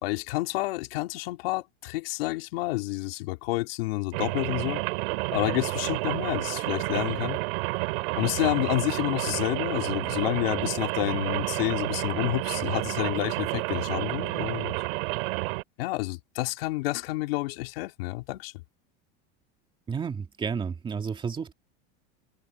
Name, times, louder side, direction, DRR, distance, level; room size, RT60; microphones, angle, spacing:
voice 1, 0.0-4.8 5.3-7.4 8.1-14.7 15.8-18.5, left 21 dB, 85° left, 3.8 m, -29 dB
Rain, 4.1-15.6, right 25 dB, 75° right, 5.6 m, -30 dB
voice 2, 19.9-21.5, right 6 dB, 15° right, 2.4 m, -31 dB
supercardioid pair, 160°, 29 cm